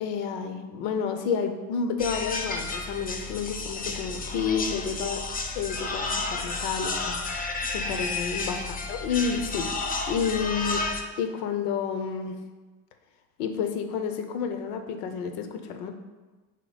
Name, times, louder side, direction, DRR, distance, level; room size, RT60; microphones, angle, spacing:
voice 1, 0.0-5.2 5.6-7.2 7.7-10.8 11.2-12.4 13.4-15.9, left 6 dB, 80° left, 7 dB, 0.7 m, -30 dB
sound 1, 2.0-11.0, left 3 dB, 20° left, 0.4 m, -31 dB
3.6 x 3.0 x 4.8 m, 1.3 s
hypercardioid pair, 75°, 46 cm